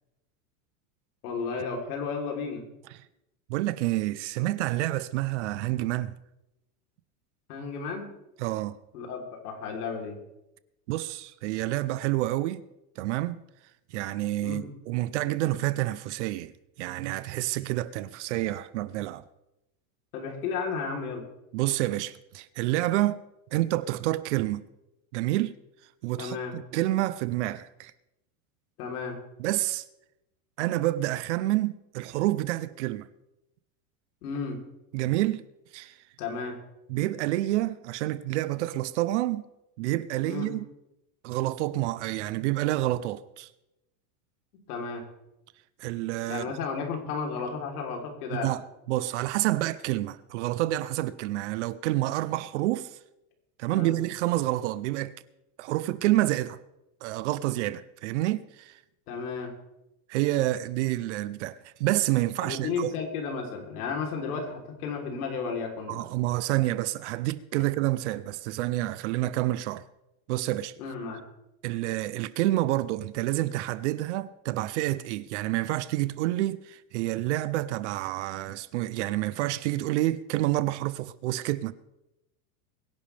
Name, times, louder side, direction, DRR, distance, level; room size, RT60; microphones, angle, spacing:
voice 1, 1.2-2.7 7.5-8.1 8.9-10.2 14.4-14.7 20.1-21.2 26.2-26.6 28.8-29.2 34.2-34.6 36.2-36.6 40.3-40.5 44.5-45.1 46.3-48.5 53.7-54.0 59.1-59.5 62.4-66.1 70.8-71.2, left 5 dB, 75° left, 3.6 m, -33 dB
voice 2, 3.5-6.1 8.4-8.8 10.9-12.6 13.0-13.4 13.9-16.5 16.8-19.2 21.5-23.2 23.5-24.6 25.1-25.6 26.0-27.9 29.4-29.8 30.6-33.1 34.9-35.4 35.7-36.0 36.9-39.4 39.8-40.7 41.2-43.5 45.8-46.5 48.3-48.6 48.9-52.9 53.6-55.1 55.6-56.6 57.0-58.8 60.1-62.9 65.9-69.8 70.3-70.7 71.6-81.7, right 16 dB, 50° right, 0.6 m, -28 dB
23.0 x 10.5 x 3.4 m
supercardioid pair, 170°, 46 cm